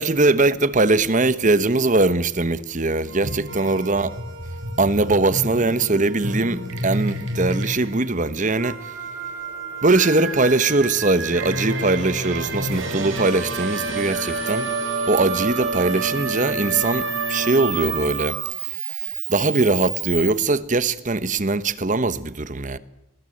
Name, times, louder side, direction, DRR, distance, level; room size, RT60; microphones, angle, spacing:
voice 1, 0.0-4.1 4.8-8.9 9.8-14.7 15.1-22.8, right 3 dB, 35° right, 1.1 m, -21 dB
sound 1, 3.1-18.5, right 2 dB, 70° right, 4.9 m, -29 dB
Camera, 13.3-20.3, right 9 dB, 20° right, 3.0 m, -33 dB
23.5 x 21.0 x 7.9 m
head